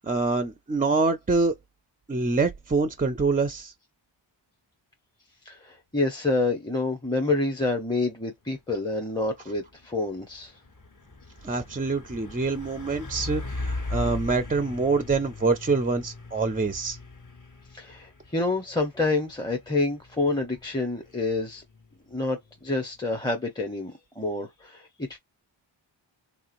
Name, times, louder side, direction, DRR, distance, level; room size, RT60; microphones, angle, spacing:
voice 1, 0.0-1.5 2.1-3.7 11.4-17.0, right 3 dB, 20° right, 0.3 m, -25 dB
voice 2, 5.5-10.5 17.7-21.6 22.1-25.2, left 2 dB, 10° left, 0.6 m, -28 dB
Truck, 9.0-23.3, left 2 dB, 40° left, 1.3 m, -39 dB
3.3 x 2.8 x 2.4 m
wide cardioid pair, 90°, 47 cm